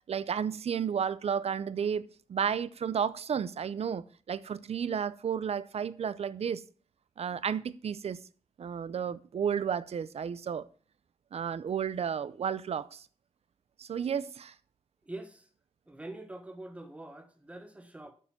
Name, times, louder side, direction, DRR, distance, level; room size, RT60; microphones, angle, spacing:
voice 1, 0.1-6.6 7.2-8.2 8.6-10.7 11.3-13.0 13.8-14.5, right 7 dB, 65° right, 0.6 m, -32 dB
voice 2, 15.0-15.5 15.9-18.1, right 2 dB, 10° right, 1.3 m, -44 dB
7.3 x 6.7 x 7.2 m
wide cardioid pair, 165°, 11 cm